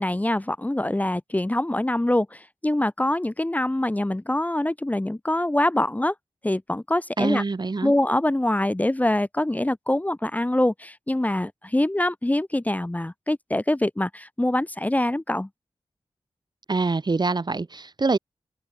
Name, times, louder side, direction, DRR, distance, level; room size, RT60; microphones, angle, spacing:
voice 1, 0.0-6.1 6.4-7.4 7.8-15.5, left 1 dB, 15° left, 1.2 m, -24 dB
voice 2, 7.2-7.9 16.7-18.2, right 3 dB, 45° right, 1.9 m, -25 dB
wide cardioid pair, 95°, 11 cm